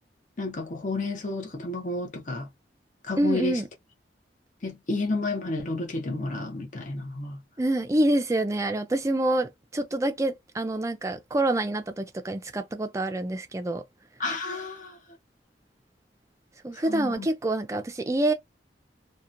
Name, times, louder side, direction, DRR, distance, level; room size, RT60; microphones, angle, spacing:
voice 1, 0.4-2.5 3.1-3.5 4.6-7.4 14.2-14.9 16.9-17.3, left 2 dB, 45° left, 0.6 m, -31 dB
voice 2, 3.2-3.7 7.6-13.8 16.6-18.3, right 1 dB, 15° right, 0.3 m, -26 dB
2.8 x 2.1 x 2.5 m
head